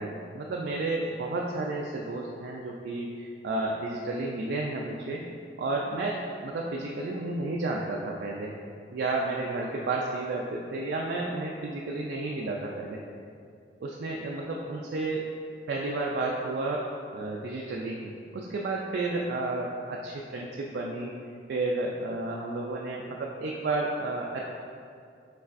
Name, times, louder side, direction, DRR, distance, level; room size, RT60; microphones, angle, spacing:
voice 1, 0.0-5.2 5.6-8.5 8.9-13.0 13.8-15.3 15.7-16.8 17.1-21.2 21.5-24.4, right 2 dB, 65° right, -2 dB, 0.3 m, -32 dB
5.5 x 3.2 x 2.5 m, 2.3 s
head